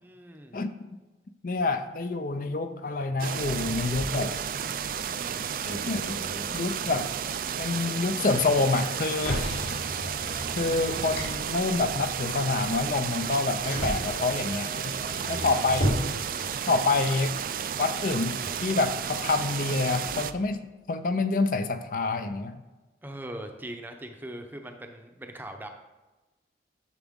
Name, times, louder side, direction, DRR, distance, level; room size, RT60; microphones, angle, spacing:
voice 1, 0.0-0.6 15.1-15.6 23.0-25.7, right 1 dB, 10° right, 5 dB, 0.7 m, -41 dB
voice 2, 1.4-4.4 5.6-6.2 6.5-7.1 7.6-9.6 10.6-14.9 15.3-16.0 16.7-17.4 17.8-22.6, left 3 dB, 50° left, 9 dB, 0.5 m, -27 dB
sound 1, 3.2-20.3, right 8 dB, 50° right, 0.4 m, -33 dB
Motor vehicle (road), 3.3-20.5, equal, 65° left, 3.2 m, -37 dB
10.5 x 6.9 x 3.7 m, 1.1 s
head